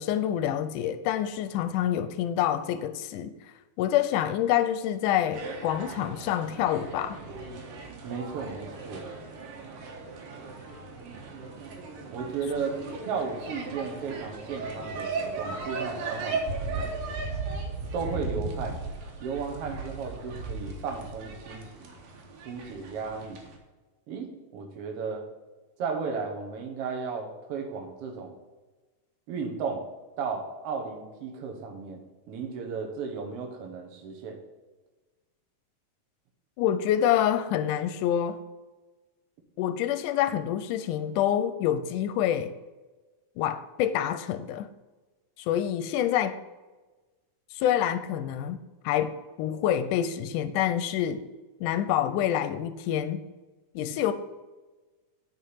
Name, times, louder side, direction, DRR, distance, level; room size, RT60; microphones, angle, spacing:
voice 1, 0.0-3.3 3.8-7.2 36.6-38.4 39.6-42.5 43.4-44.7 45.4-46.4 47.5-48.6 48.8-51.2 51.6-53.2 53.8-54.1, left 10 dB, 80° left, 2.0 m, -27 dB
sound 1, 5.3-23.6, right 3 dB, 80° right, 3.0 m, -37 dB
voice 2, 8.0-9.0 12.1-12.8 13.0-16.9 17.9-18.8 19.2-21.9 22.5-23.4 24.1-25.2 25.8-28.3 29.3-29.8 30.2-32.0 32.3-34.4, right 5 dB, 55° right, 1.9 m, -34 dB
9.3 x 5.1 x 5.6 m
omnidirectional pair, 3.8 m